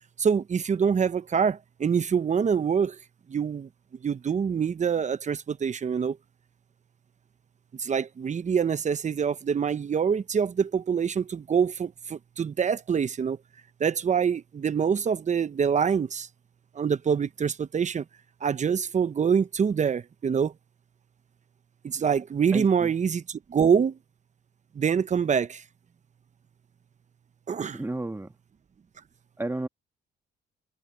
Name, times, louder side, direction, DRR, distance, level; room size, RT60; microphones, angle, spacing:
voice 1, 0.2-3.0 3.3-3.7 4.0-6.2 7.8-13.4 13.8-16.3 16.7-18.0 18.4-20.5 21.8-24.0 24.7-25.6 27.5-27.8, right 7 dB, 35° right, 0.9 m, -25 dB
voice 2, 22.5-22.9 27.7-28.3 29.4-29.7, right 2 dB, 10° right, 1.8 m, -32 dB
cardioid pair, 90°, 20 cm